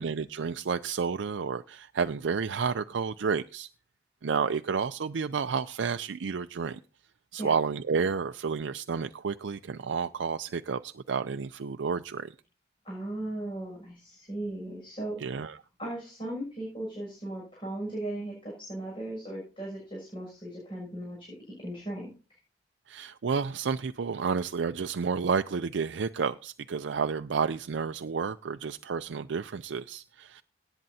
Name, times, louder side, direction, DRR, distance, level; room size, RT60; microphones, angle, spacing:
voice 1, 0.0-3.7 4.2-6.8 7.3-12.3 15.2-15.6 22.9-30.4, right 5 dB, 90° right, 9 dB, 0.5 m, -31 dB
voice 2, 12.8-15.2 15.8-22.1, right 1 dB, 30° left, -3 dB, 6.8 m, -37 dB
18.5 x 9.0 x 2.8 m, 0.36 s
head